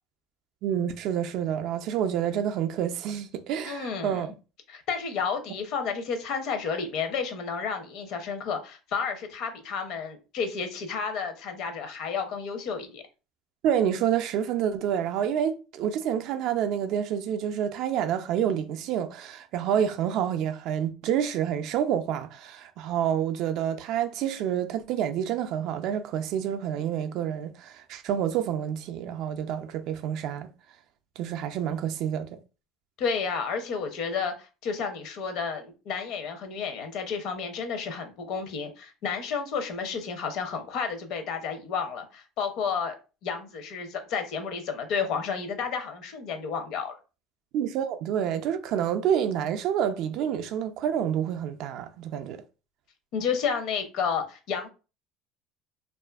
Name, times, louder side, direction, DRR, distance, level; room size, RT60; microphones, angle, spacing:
voice 1, 0.6-4.4 13.6-30.5 31.2-32.3 47.5-52.4, right 9 dB, 60° right, 0.3 m, -28 dB
voice 2, 3.6-4.3 4.7-13.0 33.0-43.0 43.2-47.0 53.1-54.7, left 6 dB, 60° left, 0.6 m, -31 dB
2.5 x 2.4 x 2.3 m
cardioid pair, 140°, 0 cm